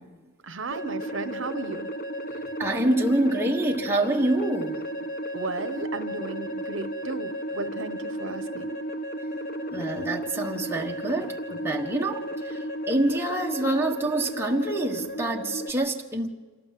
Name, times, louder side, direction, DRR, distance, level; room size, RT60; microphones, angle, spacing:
voice 1, 0.4-1.9 5.3-8.8, right 3 dB, 70° right, 1.0 m, -35 dB
sound 1, 0.7-15.7, equal, 45° left, 1.1 m, -34 dB
voice 2, 2.6-4.9 9.7-16.3, right 1 dB, 10° right, 1.3 m, -26 dB
26.5 x 18.5 x 7.7 m
head